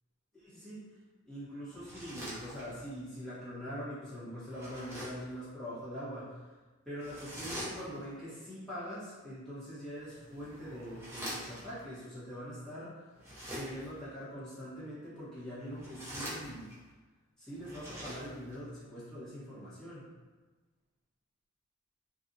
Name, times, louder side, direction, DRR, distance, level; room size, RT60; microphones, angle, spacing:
voice 1, 0.3-0.8 1.2-6.5 6.8-13.1 13.5-16.8 17.4-20.1, equal, 5° left, -12 dB, 1.0 m, -43 dB
sound 1, 1.7-3.0 4.5-5.3 7.0-8.2 10.0-11.8 13.2-14.0 15.6-16.9 17.5-18.6, equal, 10° right, 0.6 m, -44 dB
2.6 x 2.4 x 2.6 m, 1.3 s
head